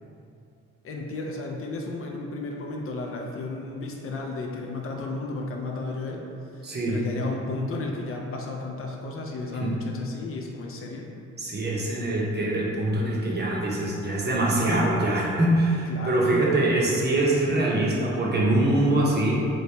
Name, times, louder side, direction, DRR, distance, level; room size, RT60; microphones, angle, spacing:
voice 1, 0.8-6.2 6.5-11.1 15.9-16.8, left 2 dB, 50° left, 0 dB, 0.4 m, -33 dB
voice 2, 6.6-7.0 9.6-9.7 11.4-19.5, right 1 dB, 35° right, -4 dB, 0.7 m, -23 dB
3.0 x 2.6 x 3.2 m, 2.6 s
cardioid pair, 90°, 30 cm